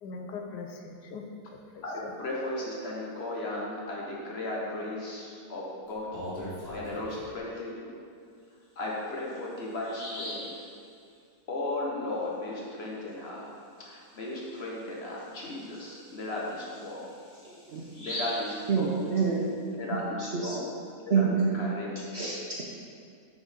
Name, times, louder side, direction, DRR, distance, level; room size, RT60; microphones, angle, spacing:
voice 1, 0.0-2.1, left 4 dB, 80° left, 3 dB, 1.3 m, -41 dB
voice 2, 1.8-6.1 6.4-8.0 8.8-10.7 11.5-13.5 13.8-17.2 18.0-19.0 19.7-20.8 21.1-21.2 21.5-22.1, left 2 dB, 40° left, -3 dB, 1.3 m, -36 dB
Bird vocalization bird call bird song, 5.9-7.4 8.8-8.9 9.4-9.5 9.8-10.5 14.0-14.1 14.5-14.6 15.2-19.4, equal, 65° left, 2.6 m, -41 dB
voice 3, 17.4-17.8 18.7-19.5 20.2-20.5 21.1-21.6 22.1-22.6, right 5 dB, 55° right, -3 dB, 0.8 m, -27 dB
6.2 x 5.1 x 5.2 m, 2.3 s
omnidirectional pair, 1.8 m